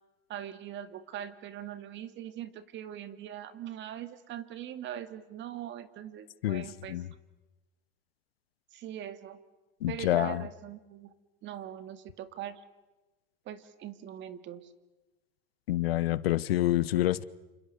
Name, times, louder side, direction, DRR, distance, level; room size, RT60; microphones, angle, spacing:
voice 1, 0.3-7.0 8.7-9.4 9.9-11.1 11.4-12.6 13.5-14.7, right 11 dB, 40° right, 2.4 m, -41 dB
voice 2, 6.4-7.1 9.8-10.4 15.7-17.2, left 14 dB, 90° left, 1.2 m, -27 dB
29.0 x 27.5 x 6.9 m
supercardioid pair, 125°, 29 cm